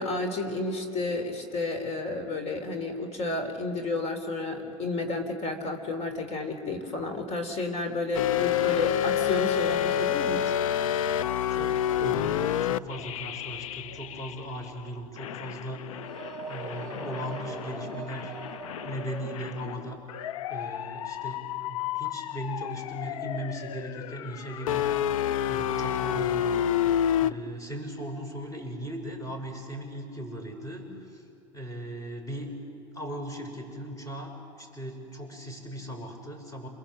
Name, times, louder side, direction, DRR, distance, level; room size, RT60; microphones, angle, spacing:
voice 1, 0.0-10.5, left 2 dB, 40° left, 6 dB, 3.5 m, -31 dB
sound 1, 8.1-14.7 15.2-27.3, left 10 dB, 80° left, 0.5 m, -29 dB
voice 2, 11.5-15.8 16.5-18.3 18.8-20.0 20.5-24.9 25.4-26.6 27.2-31.2 31.5-32.5 32.9-36.7, equal, 20° left, 4 dB, 6.3 m, -38 dB
sound 2, 15.9-19.9, right 3 dB, ahead, 6.0 m, -41 dB
28.0 x 22.0 x 7.8 m, 2.7 s
hypercardioid pair, 95°, 17 cm